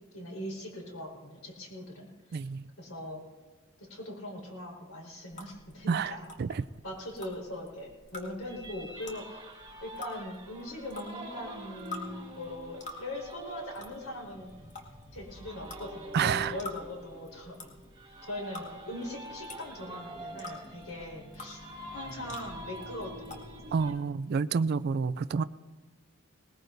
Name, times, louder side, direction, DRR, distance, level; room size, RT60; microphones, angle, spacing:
voice 1, 0.1-2.4 2.8-3.2 3.8-6.3 6.8-9.5 9.8-14.5 15.1-17.6 17.9-21.6 21.9-23.9, left 1 dB, 65° left, 4.8 m, -41 dB
voice 2, 2.3-2.6 5.9-6.7 16.1-16.5 23.7-25.4, right 5 dB, 50° right, 0.3 m, -29 dB
sound 1, 5.3-23.8, left 2 dB, 35° left, 2.1 m, -49 dB
sound 2, 8.4-23.9, right 1 dB, 20° right, 1.9 m, -46 dB
20.0 x 20.0 x 2.7 m
head